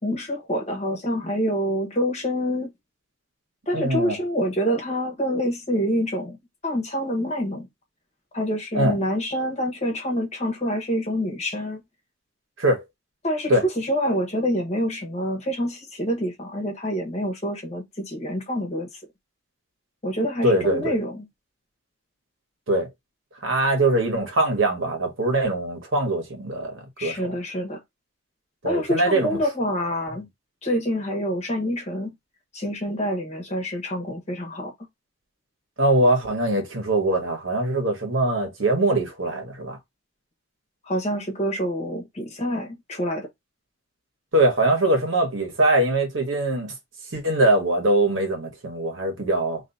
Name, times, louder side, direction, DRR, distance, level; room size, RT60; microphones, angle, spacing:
voice 1, 0.0-2.7 3.7-6.4 6.6-7.7 8.3-11.8 13.2-18.9 20.0-21.3 27.0-27.8 28.6-30.3 30.6-32.1 32.5-34.7 40.8-43.3, equal, 35° left, 1.2 m, -26 dB
voice 2, 3.7-4.2 8.7-9.0 12.6-12.8 13.5-13.7 20.4-20.9 22.7-22.9 23.4-27.2 28.6-29.4 35.8-39.8 44.3-46.7 47.1-49.6, right 1 dB, 80° right, 1.5 m, -22 dB
3.0 x 2.9 x 4.0 m
head